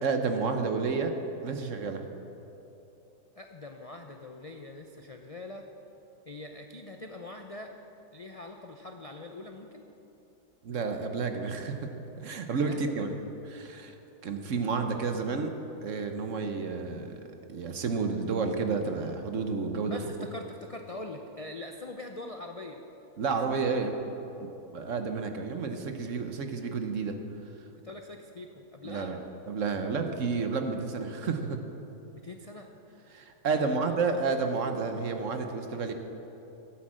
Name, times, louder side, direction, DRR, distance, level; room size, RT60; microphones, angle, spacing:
voice 1, 0.0-1.1 1.4-2.0 10.6-11.9 12.2-13.2 13.5-13.9 14.2-15.5 15.8-17.2 17.5-20.0 23.2-23.9 24.4-24.5 24.7-27.2 28.8-29.2 29.5-31.6 33.1-35.9, right 4 dB, 55° right, 6 dB, 1.2 m, -30 dB
voice 2, 3.4-5.7 6.3-7.7 8.1-9.8 12.5-13.1 14.9-15.1 19.9-22.8 23.5-23.9 27.8-29.1 32.2-32.7 33.5-33.9, left 2 dB, 55° left, 3 dB, 0.4 m, -43 dB
13.5 x 8.7 x 7.5 m, 3.0 s
omnidirectional pair, 1.7 m